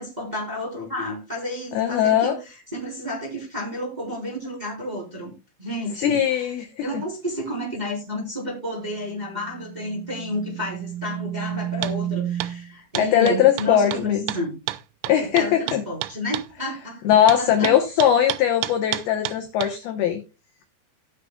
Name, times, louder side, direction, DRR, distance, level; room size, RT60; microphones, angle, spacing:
voice 1, 0.0-5.3 5.6-6.5 6.8-14.5 15.2-17.0 17.4-17.7, left 1 dB, 10° right, -3 dB, 2.9 m, -31 dB
voice 2, 1.7-2.3 6.0-6.8 13.0-14.3 15.1-15.8 17.0-20.2, left 10 dB, 80° left, 4 dB, 2.2 m, -20 dB
sound 1, 8.8-12.7, right 11 dB, 40° right, 3.7 m, -32 dB
sound 2, 11.8-12.0 12.4-12.5 13.0-16.5 17.3-19.7, right 16 dB, 85° right, 3.1 m, -31 dB
18.5 x 6.7 x 2.3 m, 0.28 s
omnidirectional pair, 6.0 m